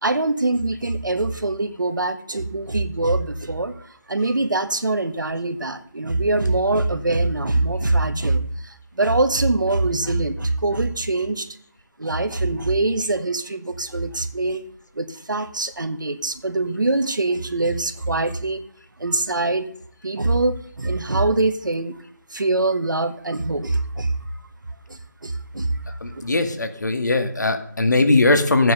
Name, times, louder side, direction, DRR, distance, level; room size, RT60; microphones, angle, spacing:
voice 1, 0.0-3.7 4.1-8.4 9.0-11.5 12.0-14.7 15.0-18.6 19.0-19.7 20.0-21.9 22.3-24.2 25.2-25.8 26.1-26.2, right 2 dB, 90° right, 9 dB, 1.5 m, -23 dB
voice 2, 26.0-28.7, left 2 dB, 70° left, 7 dB, 2.2 m, -19 dB
14.5 x 9.2 x 5.4 m, 0.62 s
figure-of-eight pair, 175°, 10 cm